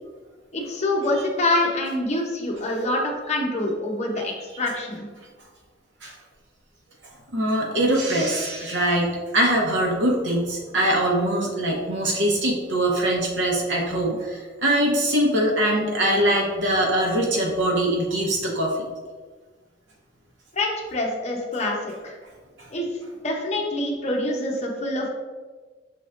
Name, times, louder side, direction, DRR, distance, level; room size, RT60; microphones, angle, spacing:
voice 1, 0.5-5.1 20.5-21.8 22.0-22.2 22.7-22.9 23.2-25.1, left 1 dB, 40° left, -1 dB, 0.8 m, -25 dB
voice 2, 7.3-18.7, right 1 dB, 90° right, -1 dB, 1.0 m, -22 dB
5.9 x 3.3 x 2.5 m, 1.4 s
head